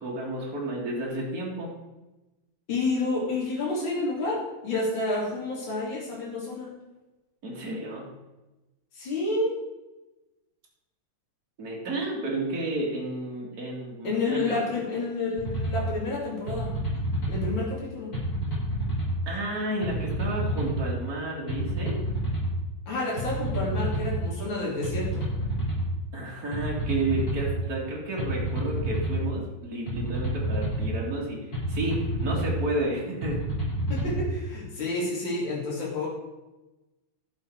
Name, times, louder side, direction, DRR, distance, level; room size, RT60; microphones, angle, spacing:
voice 1, 0.0-1.7 7.4-8.1 11.6-14.6 19.3-22.0 26.1-33.5, right 2 dB, 45° right, -3 dB, 2.8 m, -31 dB
voice 2, 2.7-6.7 8.9-9.6 14.0-16.7 17.3-18.1 22.9-25.2 33.9-36.1, left 2 dB, 60° left, -5 dB, 3.5 m, -29 dB
sound 1, 15.4-15.8 16.5-17.5 18.1-19.2 19.8-20.8 21.5-22.5 23.2-24.2 24.8-25.9 26.5-27.5 28.2-29.2 29.9-30.9 31.5-32.6 33.2-34.2, right 1 dB, 45° left, 4.7 m, -29 dB
11.5 x 7.2 x 4.7 m, 1.1 s
omnidirectional pair, 2.3 m